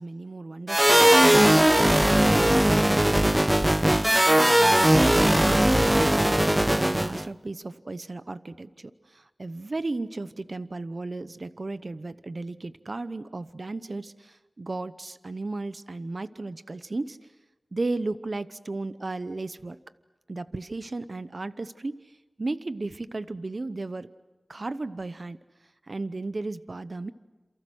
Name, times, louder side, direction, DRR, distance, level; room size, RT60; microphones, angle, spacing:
voice 1, 0.0-3.3 3.8-17.2 17.7-19.8 20.3-22.1 22.4-24.1 24.5-25.4 25.9-27.1, right 2 dB, 65° right, 13 dB, 0.9 m, -35 dB
sound 1, 0.7-7.2, right 1 dB, 15° right, 0.8 m, -19 dB
28.0 x 28.0 x 6.3 m, 1.1 s
wide cardioid pair, 50°, 0 cm